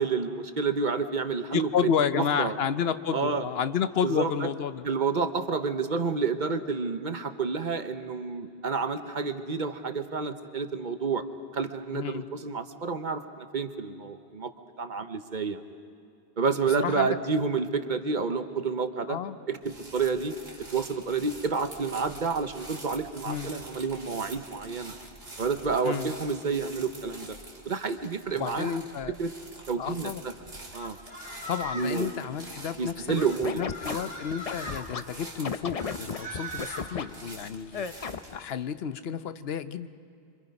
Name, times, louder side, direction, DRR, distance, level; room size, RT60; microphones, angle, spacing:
voice 1, 0.0-2.5 3.1-3.4 4.0-4.5 4.8-11.2 11.5-14.5 14.8-15.6 16.4-19.2 19.5-20.3 20.7-24.9 25.4-27.4 27.6-28.7 29.2-29.3 29.7-30.3 30.7-31.0 31.7-32.1 32.8-33.6, right 5 dB, 50° right, 9 dB, 1.0 m, -29 dB
voice 2, 1.5-4.9 11.9-12.3 16.8-17.2 19.1-19.4 23.2-23.5 25.8-26.1 28.3-29.2 29.8-30.2 31.5-33.1 33.5-39.9, left 8 dB, 75° left, 12 dB, 1.0 m, -31 dB
sound 1, 19.6-38.4, right 2 dB, 70° right, 2.6 m, -46 dB
sound 2, 30.7-32.0 33.2-34.8 35.8-36.9, equal, 5° right, 2.3 m, -40 dB
Scratching (performance technique), 33.1-35.0 35.4-37.0 37.7-38.4, left 6 dB, 40° left, 0.7 m, -33 dB
25.5 x 25.5 x 5.3 m, 2.5 s
omnidirectional pair, 1.0 m